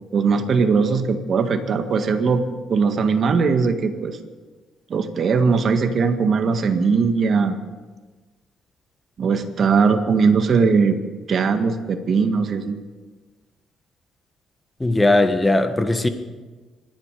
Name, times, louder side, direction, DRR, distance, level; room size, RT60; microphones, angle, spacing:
voice 1, 0.1-2.4 2.7-4.2 4.9-7.6 9.2-11.0 11.3-12.8, right 5 dB, 55° right, 7 dB, 1.8 m, -19 dB
voice 2, 14.8-16.1, left 2 dB, 15° left, 8 dB, 1.5 m, -18 dB
27.0 x 11.0 x 5.0 m, 1.3 s
cardioid pair, 90°, 0 cm